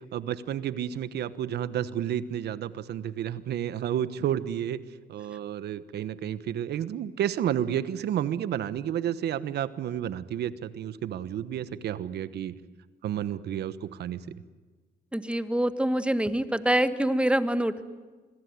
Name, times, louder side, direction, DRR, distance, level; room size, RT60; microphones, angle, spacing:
voice 1, 0.1-4.8 5.1-12.6 13.0-14.2, right 10 dB, 80° right, 15 dB, 1.2 m, -31 dB
voice 2, 15.1-17.8, right 1 dB, 5° right, 11 dB, 1.6 m, -25 dB
26.0 x 21.5 x 9.6 m, 1.3 s
cardioid pair, 80°, 17 cm